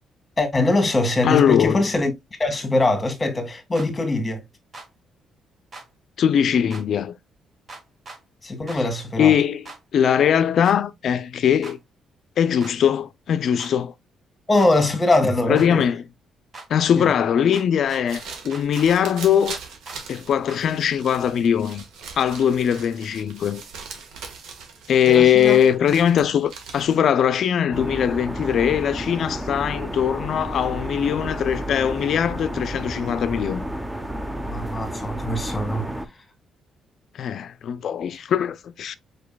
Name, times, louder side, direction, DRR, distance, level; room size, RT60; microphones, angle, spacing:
voice 1, 0.4-2.1 2.4-4.4 8.4-9.3 14.5-15.8 16.9-17.1 25.0-25.6 34.4-35.9, left 2 dB, 20° left, 1.6 m, -22 dB
voice 2, 1.2-1.8 6.2-7.2 9.2-9.6 9.9-11.8 12.4-13.9 15.5-16.0 16.7-19.6 20.1-21.8 22.2-23.6 24.9-33.6 37.1-39.0, left 9 dB, 65° left, 0.4 m, -21 dB
sound 1, 3.7-3.9 4.7-4.9 5.7-5.9 6.7-6.8 7.7-8.2 8.7-8.8 9.6-9.8 10.6-10.8 11.6-11.8 12.6-12.7 13.6-13.7 14.6-14.7 15.5-15.7 16.5-16.7 17.5-18.0 18.5-19.0 19.5-20.0 20.5-20.6, right 2 dB, 40° right, 1.4 m, -40 dB
sound 2, 17.8-27.1, right 5 dB, 85° right, 1.4 m, -40 dB
sound 3, 27.7-36.1, equal, 10° right, 0.8 m, -31 dB
4.9 x 4.5 x 2.2 m
cardioid pair, 90°, 0 cm